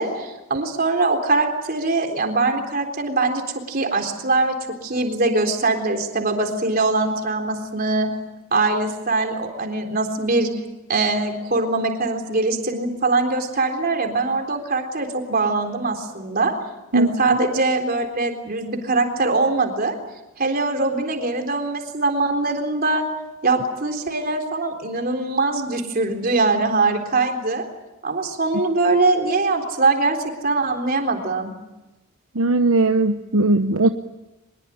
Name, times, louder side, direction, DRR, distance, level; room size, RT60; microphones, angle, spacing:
voice 1, 0.0-3.4 3.7-4.5 4.8-8.1 8.5-10.5 10.9-16.6 16.9-20.0 20.4-23.0 23.4-27.7 28.0-31.5, right 3 dB, 45° right, 4 dB, 3.8 m, -22 dB
voice 2, 16.9-17.4 32.3-33.9, right 2 dB, 70° right, 7 dB, 1.0 m, -19 dB
24.0 x 21.5 x 8.8 m, 1.0 s
head